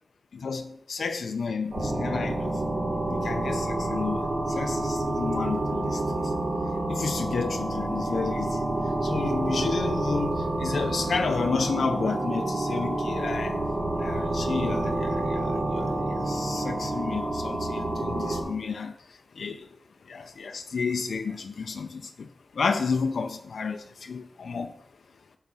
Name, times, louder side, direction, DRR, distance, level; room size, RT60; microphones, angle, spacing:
voice 1, 0.3-2.6 3.1-6.3 6.9-13.6 14.0-19.7 20.1-22.3 22.5-24.7, left 5 dB, 85° left, 0.4 m, -31 dB
sound 1, 1.7-18.4, right 1 dB, 80° right, 3.7 m, -28 dB
9.2 x 4.0 x 5.9 m
wide cardioid pair, 135°, 0 cm